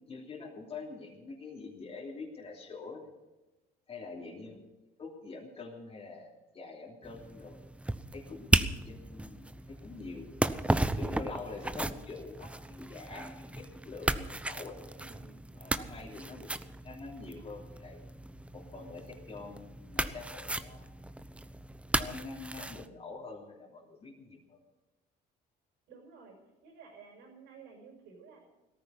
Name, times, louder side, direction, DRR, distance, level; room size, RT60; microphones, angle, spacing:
voice 1, 0.1-3.1 3.9-4.6 5.0-7.6 8.1-10.3 10.9-14.8 15.5-16.6 16.8-18.0 18.5-21.0 21.9-24.6, left 3 dB, 35° left, -2 dB, 3.2 m, -45 dB
voice 2, 4.2-4.6 11.7-12.0 14.9-15.3 15.9-16.2 25.9-26.4 26.6-28.4, right 5 dB, 85° right, 3 dB, 6.0 m, -54 dB
sound 1, 7.0-22.9, right 1 dB, 5° right, 0.8 m, -35 dB
17.0 x 14.5 x 5.4 m, 1.1 s
cardioid pair, 110°, 17 cm